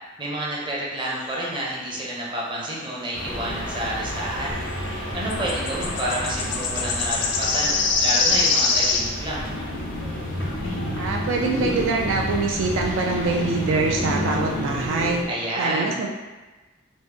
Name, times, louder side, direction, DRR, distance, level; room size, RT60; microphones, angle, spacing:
voice 1, 0.2-4.6 5.1-9.4 15.3-16.0, right 1 dB, 25° right, -5 dB, 0.6 m, -29 dB
sound 1, 1.3-1.5 5.3-9.1, left 4 dB, 65° left, 0.4 m, -23 dB
sound 2, 3.1-15.3, left 1 dB, 90° left, 1.1 m, -30 dB
voice 2, 10.9-15.2 15.6-16.1, right 3 dB, 70° right, 0 dB, 0.3 m, -24 dB
3.0 x 2.0 x 3.2 m, 1.2 s
head